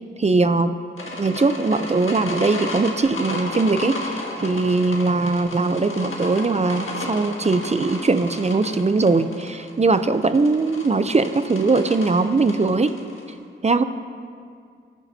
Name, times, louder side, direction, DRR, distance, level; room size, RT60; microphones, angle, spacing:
voice 1, 0.2-0.8 1.2-4.0 4.4-12.9 13.6-13.8, right 3 dB, 35° right, 11 dB, 0.5 m, -20 dB
sound 1, 1.0-13.3, left 2 dB, 75° left, 1.8 m, -33 dB
19.0 x 10.5 x 2.7 m, 2.2 s
wide cardioid pair, 80°, 21 cm